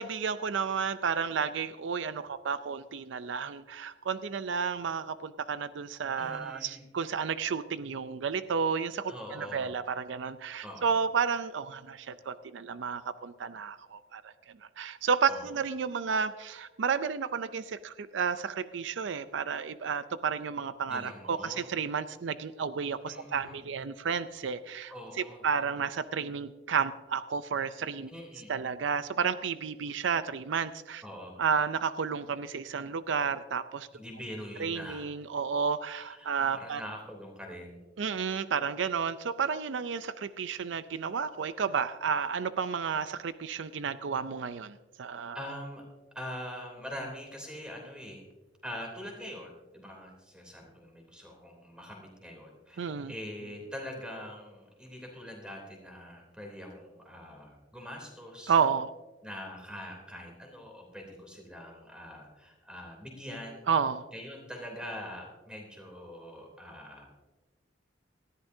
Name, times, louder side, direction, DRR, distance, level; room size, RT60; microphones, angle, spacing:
voice 1, 0.0-14.3 14.8-28.1 28.5-31.0 31.4-33.9 34.6-36.8 38.0-45.4 52.8-53.1 58.5-58.9 63.7-64.1, right 6 dB, 80° right, 13 dB, 0.5 m, -31 dB
voice 2, 6.2-6.8 9.1-9.7 10.6-11.0 15.3-15.5 20.9-21.7 23.1-23.6 24.9-25.4 28.1-28.5 31.0-31.4 33.9-35.1 35.9-37.8 45.3-45.8 46.1-48.2 48.6-58.6 59.2-63.6 64.1-67.1, equal, 5° right, 1 dB, 3.1 m, -43 dB
19.0 x 14.0 x 2.7 m, 1.2 s
head